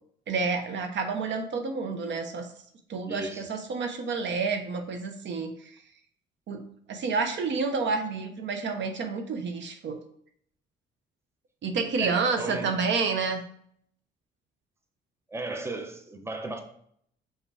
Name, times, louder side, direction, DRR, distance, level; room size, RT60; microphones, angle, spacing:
voice 1, 0.3-2.5 2.9-5.7 6.5-6.6 6.9-10.0 11.6-13.4, right 4 dB, 65° right, 0.9 m, -29 dB
voice 2, 3.1-3.5 12.0-12.8 15.3-16.6, right 2 dB, 15° right, 0.8 m, -35 dB
5.4 x 3.6 x 4.8 m
cardioid pair, 90°, 20 cm